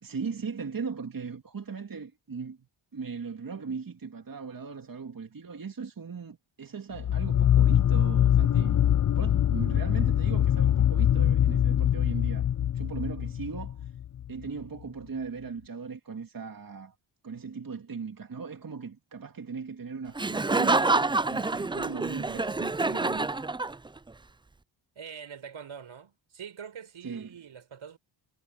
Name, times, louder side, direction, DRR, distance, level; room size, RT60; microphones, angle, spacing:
voice 1, 0.0-2.7 2.9-8.8 9.2-12.5 12.7-13.9 14.3-17.0 17.2-23.3 27.0-27.3, right 5 dB, 45° right, 2.1 m, -38 dB
sound 1, 7.0-14.3, left 10 dB, 40° left, 0.5 m, -23 dB
Laughter, 20.2-24.1, right 3 dB, 10° right, 0.4 m, -27 dB
voice 2, 25.0-28.0, right 7 dB, 70° right, 5.2 m, -44 dB
cardioid pair, 55°, 49 cm